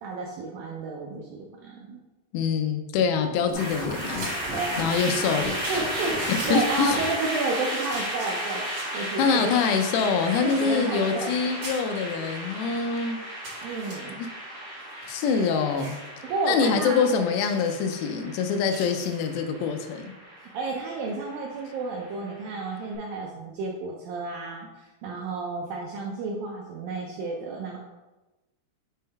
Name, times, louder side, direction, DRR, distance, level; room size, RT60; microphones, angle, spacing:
voice 1, 0.0-2.0 4.5-5.2 5.7-9.5 10.4-11.5 13.6-14.2 16.2-17.1 20.5-27.8, right 3 dB, 80° right, -1 dB, 2.1 m, -31 dB
voice 2, 2.3-4.3 4.8-5.8 6.3-7.0 9.2-13.2 14.2-14.3 15.1-16.0 16.5-20.1, left 5 dB, 85° left, 7 dB, 2.7 m, -25 dB
sound 1, 3.5-22.7, right 1 dB, 35° right, 1.2 m, -34 dB
sound 2, 3.8-4.3 4.7-4.8 5.3-5.4 5.6-6.5 7.2-7.5 7.8-9.0 9.5-11.4 11.6-11.8 12.4-12.5 12.8-12.9 13.4-13.9 14.8-16.1 16.4-16.6 16.9-17.0 17.4-17.8 18.7-19.3 21.0-21.2, right 1 dB, 55° right, 1.1 m, -42 dB
6.5 x 3.8 x 4.1 m, 1.1 s
omnidirectional pair, 4.7 m